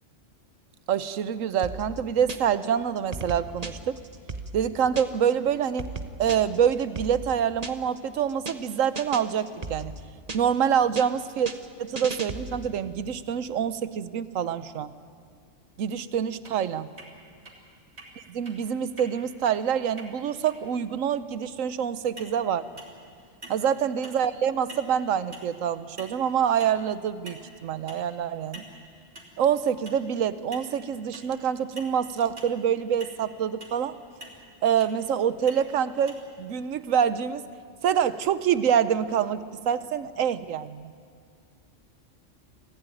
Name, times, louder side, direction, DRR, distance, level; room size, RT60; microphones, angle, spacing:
voice 1, 0.9-4.0 4.5-5.9 6.2-9.9 10.3-11.5 11.8-14.9 15.8-16.9 18.2-22.6 23.5-28.6 29.4-34.0 34.6-37.4 37.8-40.9, right 8 dB, 85° right, 14 dB, 1.2 m, -26 dB
sound 1, 1.6-2.7 3.0-5.3 5.6-8.0 8.3-8.7 9.0-10.7 11.0-12.8, right 3 dB, 35° right, 1.0 m, -37 dB
sound 2, 16.4-16.5 17.0-17.1 17.4-17.5 18.0-18.1 18.4-18.5 19.0-19.1 19.4-19.5 20.0-20.1 20.4-20.5 22.2-22.4 22.8-23.1 23.4-23.7 24.0-24.2 24.7-24.9 25.3-25.5 26.0-26.2 26.6-26.8 27.3-27.5 27.9-28.0 28.5-28.7 29.1-29.3 29.8-30.0 30.5-30.7 31.1-31.3 31.8-31.9 32.4-32.6 33.0-33.1 33.6-33.8 34.2-34.4 34.8-35.0 35.5-35.6 36.1-36.2, right 1 dB, 55° right, 3.5 m, -44 dB
25.5 x 15.5 x 9.1 m, 2.2 s
omnidirectional pair, 1.3 m